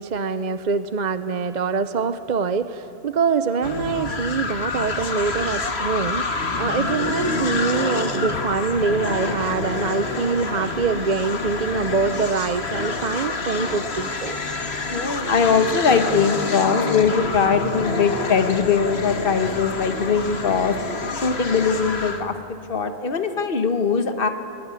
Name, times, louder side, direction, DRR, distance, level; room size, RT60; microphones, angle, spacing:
voice 1, 0.0-14.4, right 5 dB, 45° right, 11 dB, 0.8 m, -24 dB
sound 1, 3.6-22.3, left 3 dB, 70° left, 1.8 m, -27 dB
voice 2, 14.9-20.7 21.2-24.3, left 5 dB, 55° left, 8 dB, 1.5 m, -21 dB
22.0 x 21.5 x 9.9 m, 2.7 s
omnidirectional pair, 1.1 m